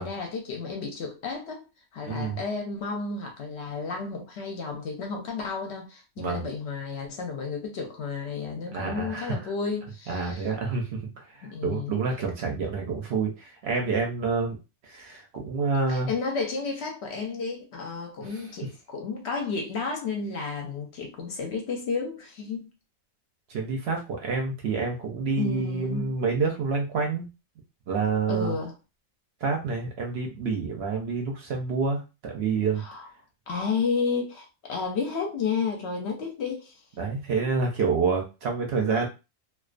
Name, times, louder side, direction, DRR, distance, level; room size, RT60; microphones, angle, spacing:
voice 1, 0.0-1.7 1.9-10.5 11.4-12.0 15.9-22.7 25.4-26.1 28.3-28.8 32.8-33.1 33.5-36.8, left 4 dB, 65° left, 0.8 m, -32 dB
voice 2, 2.0-2.4 6.2-6.4 8.7-9.4 10.1-11.0 11.3-14.6 14.8-16.1 18.2-18.4 23.5-27.3 27.9-28.5 29.4-32.8 37.0-39.1, right 4 dB, 65° right, 0.7 m, -28 dB
2.3 x 2.2 x 2.4 m
omnidirectional pair, 1.4 m